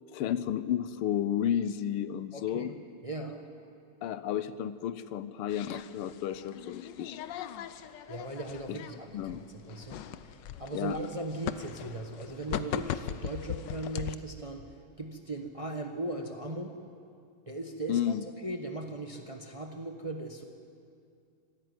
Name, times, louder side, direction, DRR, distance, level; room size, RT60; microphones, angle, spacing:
voice 1, 0.1-2.7 4.0-7.2 8.7-8.8 9.1-9.4 10.7-11.0 17.9-18.2, left 10 dB, 85° left, 14 dB, 1.7 m, -32 dB
voice 2, 2.3-2.7 3.0-3.5 7.8-16.8 17.5-18.1 18.4-20.4, right 2 dB, 20° right, 4 dB, 0.9 m, -38 dB
sound 1, 5.5-14.2, left 10 dB, 65° left, 1.2 m, -40 dB
25.5 x 13.5 x 9.5 m, 2.4 s
omnidirectional pair, 2.4 m